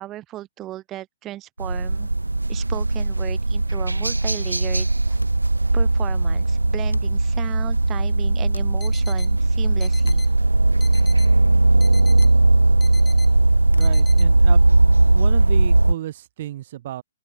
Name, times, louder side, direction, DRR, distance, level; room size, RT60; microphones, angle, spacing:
voice 1, 0.0-2.1 2.5-5.2 5.7-10.2, right 14 dB, 20° right, 2.0 m, -36 dB
sound 1, 1.6-15.9, right 2 dB, 85° right, 0.4 m, -18 dB
sound 2, 5.2-14.5, left 1 dB, 85° left, 1.7 m, -40 dB
sound 3, 8.8-9.3 9.8-10.3 10.8-11.3 11.8-12.3 12.8-13.3 13.8-14.2, left 6 dB, 10° left, 1.1 m, -42 dB
voice 2, 13.7-17.0, right 13 dB, 45° right, 1.2 m, -33 dB
open air
figure-of-eight pair, 125°, 0 cm